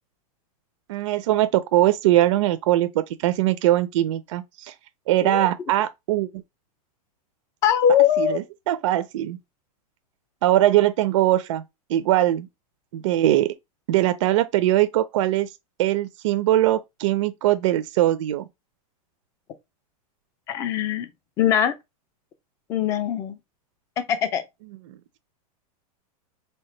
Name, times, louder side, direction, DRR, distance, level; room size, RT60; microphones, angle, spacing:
voice 1, 0.9-4.7 5.1-6.3 8.2-9.4 10.4-11.6 11.9-12.5 12.9-13.5 13.9-15.5 15.8-18.5, right 14 dB, 55° right, 0.4 m, -21 dB
voice 2, 7.6-8.4 20.5-21.1 21.4-21.7 22.7-23.4 24.0-24.4, left 9 dB, 15° left, 0.3 m, -21 dB
3.3 x 2.8 x 4.3 m
supercardioid pair, 170°, 20 cm